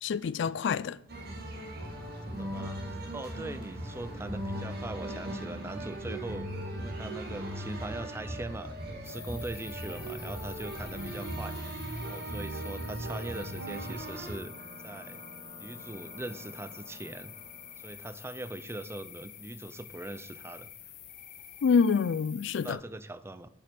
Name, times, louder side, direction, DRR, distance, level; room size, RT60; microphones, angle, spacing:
voice 1, 0.0-1.0 21.6-22.8, left 6 dB, 60° left, 0.3 m, -26 dB
sound 1, 1.1-14.3, right 1 dB, 50° right, 1.9 m, -38 dB
voice 2, 2.3-14.5 14.8-15.2 15.6-17.3 17.8-20.7 22.6-23.5, right 2 dB, 15° right, 0.4 m, -41 dB
sound 2, 9.0-22.7, left 11 dB, 40° left, 0.8 m, -48 dB
sound 3, 13.7-18.9, equal, 35° right, 3.3 m, -51 dB
8.4 x 6.0 x 6.0 m
head